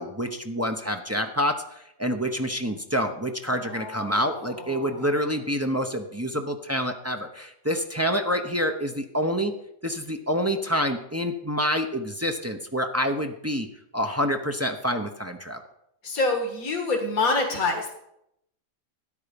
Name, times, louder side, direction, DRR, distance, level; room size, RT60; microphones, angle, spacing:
voice 1, 0.0-1.6 2.0-9.5 9.8-13.7 13.9-15.6, equal, 15° right, 4 dB, 0.7 m, -27 dB
voice 2, 3.5-5.1 16.0-17.9, left 3 dB, 85° left, 3 dB, 2.1 m, -27 dB
13.0 x 9.7 x 5.2 m, 0.79 s
omnidirectional pair, 1.5 m